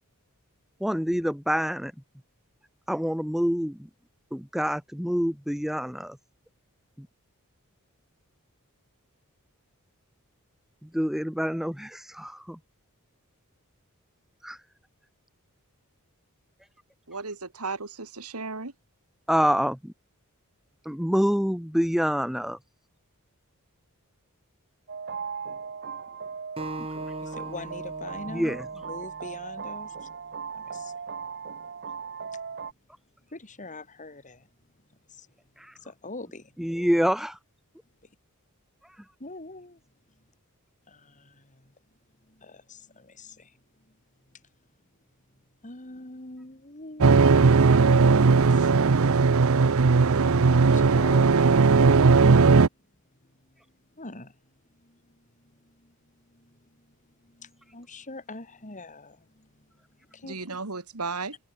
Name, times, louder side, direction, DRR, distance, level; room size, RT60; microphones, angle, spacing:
voice 1, 0.8-1.9 2.9-3.9 4.3-6.2 7.0-7.1 10.8-12.6 14.4-14.6 19.3-19.9 20.8-22.6 28.3-28.7 35.6-35.7 36.6-37.4, equal, ahead, 0.6 m, -26 dB
voice 2, 17.1-18.7 60.2-61.4, right 4 dB, 80° right, 2.7 m, -35 dB
sound 1, 24.9-32.7, right 6 dB, 50° right, 1.0 m, -38 dB
Acoustic guitar, 26.6-29.9, right 1 dB, 25° right, 5.4 m, -40 dB
voice 3, 27.2-30.1 30.5-30.9 33.3-34.4 35.1-35.3 35.8-36.9 39.2-39.8 40.9-41.7 42.3-43.5 45.6-47.4 47.6-48.7 50.6-52.5 54.0-54.3 54.8-55.0 55.6-56.0 56.3-56.6 57.2-59.5 60.1-60.4, left 2 dB, 35° left, 3.6 m, -43 dB
sound 2, 47.0-52.7, right 4 dB, 65° right, 0.6 m, -18 dB
head